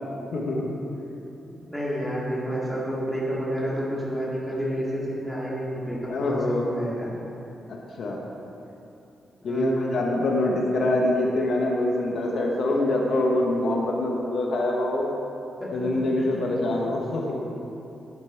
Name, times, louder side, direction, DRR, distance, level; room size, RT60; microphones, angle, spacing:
voice 1, 0.3-0.7 6.1-6.6 7.7-8.2 9.4-15.1 15.7-17.4, left 1 dB, 60° left, -1 dB, 1.0 m, -25 dB
voice 2, 1.4-7.1 9.4-9.8 15.6-15.9 16.2-16.3, equal, ahead, -7 dB, 2.1 m, -30 dB
10.5 x 6.8 x 4.5 m, 2.9 s
wide cardioid pair, 140°, 0 cm